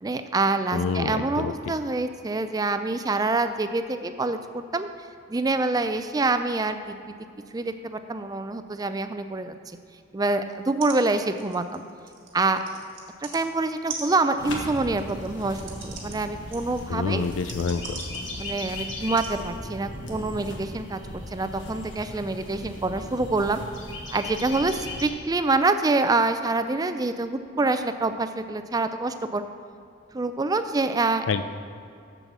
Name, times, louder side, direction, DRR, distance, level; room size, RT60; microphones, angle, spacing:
voice 1, 0.0-4.9 5.3-7.0 7.5-9.5 10.1-11.8 12.3-12.6 13.3-17.3 18.4-21.0 21.3-23.6 24.1-29.4 30.1-31.3, right 3 dB, 20° right, 9 dB, 0.4 m, -26 dB
voice 2, 0.7-1.5 16.9-18.0 31.3-31.4, left 5 dB, 85° left, 11 dB, 0.4 m, -27 dB
sound 1, 10.5-10.6 10.8-11.0 11.2-13.4 13.9-18.7 19.2-19.3 20.1-20.2, right 5 dB, 75° right, 1.5 m, -41 dB
sound 2, 14.4-25.1, left 1 dB, 65° left, 1.3 m, -37 dB
7.2 x 6.9 x 6.0 m, 2.4 s
head